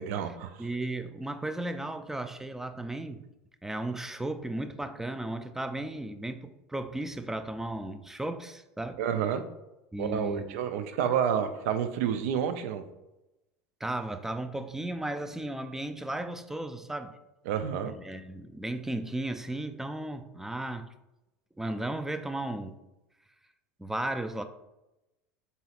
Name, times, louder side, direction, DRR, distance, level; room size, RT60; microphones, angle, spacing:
voice 1, 0.0-0.7 9.0-9.4 10.0-12.8 17.5-17.9, right 8 dB, 75° right, 10 dB, 0.4 m, -29 dB
voice 2, 0.6-3.2 3.6-9.0 9.9-10.6 13.8-17.2 17.9-20.9 21.6-22.8 23.8-24.4, right 1 dB, 5° right, 9 dB, 0.3 m, -35 dB
4.1 x 3.9 x 2.4 m, 0.95 s
hypercardioid pair, 90°, 8 cm